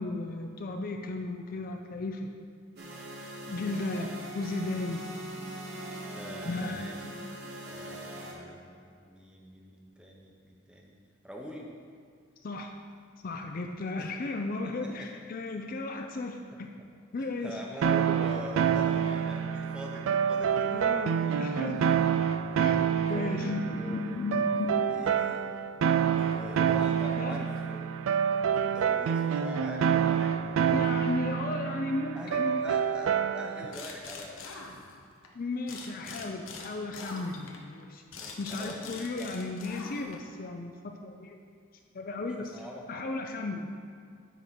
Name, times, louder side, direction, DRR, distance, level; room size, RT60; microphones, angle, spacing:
voice 1, 0.0-2.4 3.5-5.1 6.4-7.2 12.4-12.7 13.2-16.7 17.1-17.6 20.7-21.9 22.6-22.8 23.1-24.7 27.2-27.5 30.7-32.7 35.3-41.4 41.9-42.6 42.9-43.7, left 3 dB, 45° left, 4 dB, 0.4 m, -35 dB
sound 1, 2.8-8.3, right 1 dB, 50° right, 1.2 m, -41 dB
voice 2, 6.1-7.0 7.6-11.0 11.2-11.7 14.0-14.1 14.8-15.1 16.5-16.9 17.2-21.3 21.8-22.0 22.6-22.7 23.1-24.2 24.6-25.4 26.1-27.9 28.3-31.0 32.1-34.5 38.1-39.3 42.2-42.9, equal, 5° right, -1 dB, 0.8 m, -44 dB
sound 2, 17.8-33.7, right 8 dB, 75° right, 0.3 m, -27 dB
sound 3, 33.7-35.3 35.7-40.4, left 4 dB, 75° left, 0.9 m, -44 dB
9.1 x 3.7 x 5.8 m, 2.2 s
head